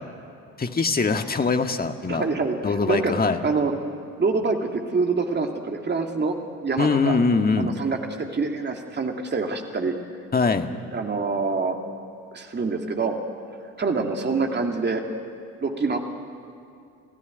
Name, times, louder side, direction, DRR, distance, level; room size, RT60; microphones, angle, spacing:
voice 1, 0.6-2.2 2.6-3.4 6.8-7.7 10.3-10.7, left 4 dB, 20° left, 6 dB, 1.8 m, -22 dB
voice 2, 2.1-3.1 3.4-3.7 4.2-6.4 6.6-7.2 7.6-9.9 10.9-11.8 12.3-13.2 13.8-15.0 15.6-16.0, right 4 dB, 25° right, 3 dB, 2.6 m, -25 dB
28.5 x 15.5 x 9.3 m, 2.5 s
figure-of-eight pair, 55°, 42 cm